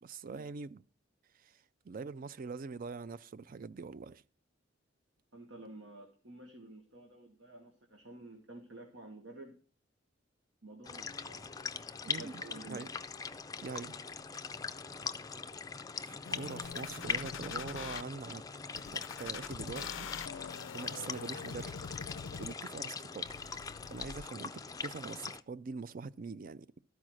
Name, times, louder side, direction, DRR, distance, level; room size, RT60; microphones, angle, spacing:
voice 1, 0.0-0.8 1.4-1.6 1.9-4.2 12.0-12.9 13.6-14.0 16.0-18.4 18.7-20.1 20.7-21.8 22.4-23.3 23.9-26.8, right 4 dB, 45° right, 0.4 m, -43 dB
voice 2, 5.3-9.6 10.6-11.5 12.2-12.8, right 2 dB, 80° right, 1.6 m, -51 dB
sound 1, 10.8-25.4, left 5 dB, 20° left, 0.4 m, -41 dB
sound 2, 16.3-18.0 18.8-22.8 23.3-24.2, left 6 dB, 80° left, 0.4 m, -44 dB
sound 3, 16.6-16.7 17.1-17.8 18.3-18.6 19.0-19.8 20.2-20.5 20.9-21.7 22.1-22.4 22.8-23.6 24.0-24.1, equal, 15° right, 0.8 m, -54 dB
12.5 x 4.8 x 6.3 m
head